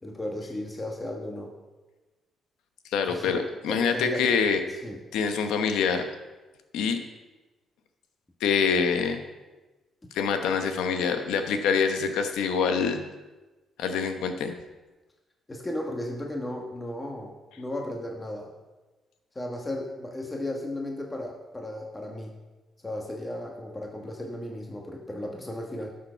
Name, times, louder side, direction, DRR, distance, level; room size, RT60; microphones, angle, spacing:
voice 1, 0.0-1.5 3.1-3.4 3.7-4.3 4.8-5.0 15.5-18.5 19.3-22.4 22.8-25.9, left 1 dB, 15° left, 0 dB, 1.4 m, -35 dB
voice 2, 2.9-4.6 5.1-6.1 6.7-7.0 8.4-9.2 10.1-13.0 13.8-14.5, left 6 dB, 90° left, 7 dB, 1.0 m, -25 dB
11.5 x 6.7 x 4.6 m, 1.2 s
cardioid pair, 90°, 0 cm